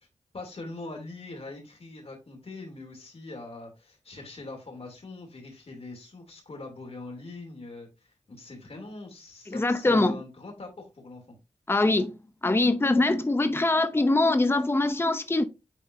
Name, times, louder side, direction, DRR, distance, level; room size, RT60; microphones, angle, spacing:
voice 1, 0.3-11.3, left 2 dB, 55° left, 3.0 m, -42 dB
voice 2, 9.5-10.2 11.7-12.2 12.4-15.4, left 2 dB, 20° left, 0.7 m, -23 dB
9.2 x 3.9 x 2.7 m
cardioid pair, 65°, 12 cm